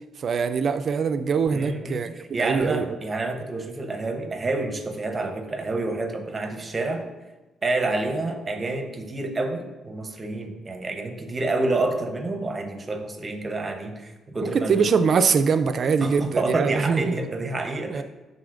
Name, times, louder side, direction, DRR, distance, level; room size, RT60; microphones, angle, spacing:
voice 1, 0.2-2.1 2.4-3.0 14.5-17.0 17.9-18.0, right 5 dB, 50° right, 10 dB, 0.4 m, -22 dB
voice 2, 1.5-7.0 7.6-14.9 16.0-18.0, right 2 dB, 30° right, 5 dB, 0.9 m, -28 dB
10.5 x 4.0 x 2.5 m, 1.1 s
cardioid pair, 90°, 0 cm